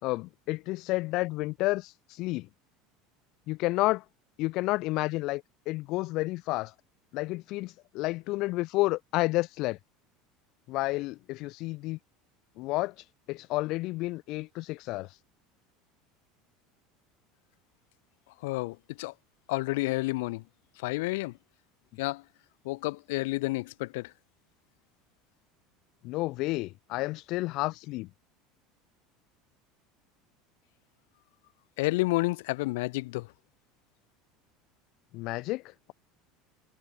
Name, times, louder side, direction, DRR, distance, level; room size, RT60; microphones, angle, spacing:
voice 1, 0.0-2.5 3.5-4.0 4.4-6.7 7.1-9.8 10.7-12.0 12.6-12.9 13.3-15.1 26.0-28.1 35.1-35.9, left 20 dB, 55° left, 3.5 m, -30 dB
voice 2, 18.4-19.1 19.5-20.4 20.8-21.4 22.0-22.2 22.6-24.1 31.8-33.3, left 22 dB, 80° left, 2.9 m, -30 dB
supercardioid pair, 145°, 0 cm